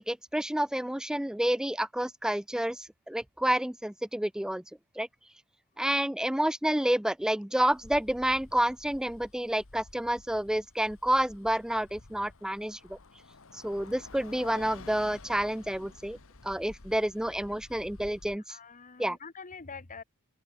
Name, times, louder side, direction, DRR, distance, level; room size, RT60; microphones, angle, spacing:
voice 1, 0.0-4.6 5.0-5.1 5.8-13.0 13.5-16.2 16.4-18.6 19.0-19.2, right 1 dB, 5° right, 0.4 m, -29 dB
Bus, 7.7-18.4, left 3 dB, 65° left, 1.6 m, -51 dB
voice 2, 17.3-17.6 18.5-20.0, left 5 dB, 35° left, 1.3 m, -46 dB
open air
head